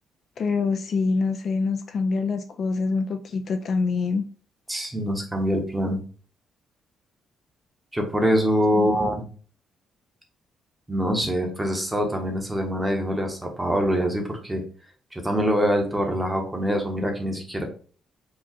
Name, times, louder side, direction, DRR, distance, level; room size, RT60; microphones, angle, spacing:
voice 1, 0.4-4.3 8.7-9.1, left 4 dB, 45° left, 0.3 m, -25 dB
voice 2, 4.7-6.0 7.9-9.3 10.9-14.6 15.1-17.6, equal, 10° right, 0.9 m, -24 dB
4.8 x 2.3 x 4.1 m
cardioid pair, 155°, 0 cm